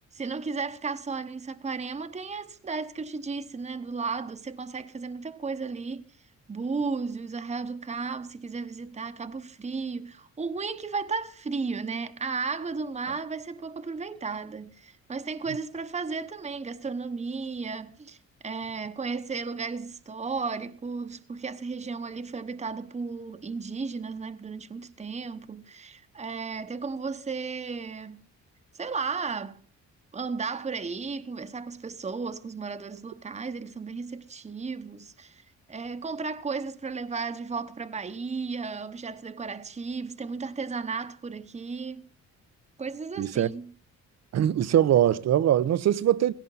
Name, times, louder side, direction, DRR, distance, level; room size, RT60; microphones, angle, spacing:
voice 1, 0.1-6.0 6.5-18.2 18.4-28.2 28.7-29.6 30.1-35.4 35.7-42.1 42.8-43.7, right 4 dB, 25° right, 1.0 m, -34 dB
voice 2, 43.2-43.5 44.3-46.3, right 11 dB, 60° right, 0.8 m, -22 dB
17.5 x 16.5 x 4.0 m
cardioid pair, 90°, 30 cm